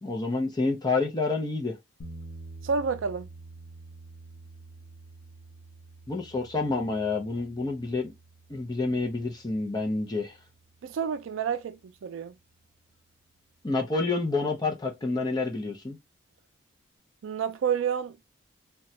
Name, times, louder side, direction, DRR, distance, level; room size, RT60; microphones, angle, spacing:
voice 1, 0.0-1.8 6.1-8.1 8.5-10.3 13.6-16.0, left 3 dB, 20° left, 0.6 m, -28 dB
sound 1, 2.0-12.0, right 2 dB, 70° left, 0.6 m, -49 dB
voice 2, 2.6-3.3 10.8-12.3 17.2-18.2, right 6 dB, 75° right, 0.4 m, -29 dB
3.0 x 2.2 x 2.7 m
head